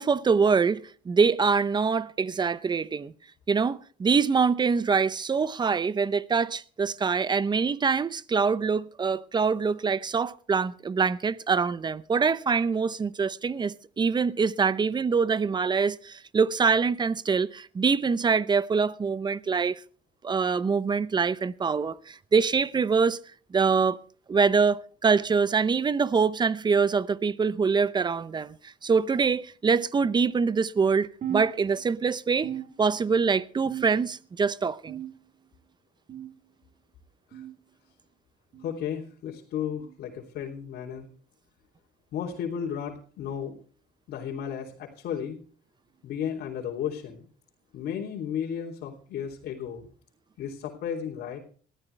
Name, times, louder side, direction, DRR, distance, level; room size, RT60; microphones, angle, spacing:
voice 1, 0.0-3.1 3.5-19.8 20.2-23.2 23.5-24.0 24.3-32.5 32.8-35.0, right 5 dB, 25° right, 0.8 m, -24 dB
sound 1, 31.2-32.1 32.4-33.2 33.6-34.3 34.9-35.5 36.1-36.5 37.3-37.5 38.5-38.7 39.7-40.0 41.0-41.2 42.2-42.4 43.4-43.6 44.6-44.7 45.9-46.0, right 11 dB, 55° right, 4.5 m, -38 dB
voice 2, 38.6-41.1 42.1-43.5 44.1-45.4 46.0-47.3 47.7-49.9 50.4-51.4, left 8 dB, 70° left, 3.2 m, -34 dB
20.0 x 13.5 x 3.4 m
cardioid pair, 110°, 17 cm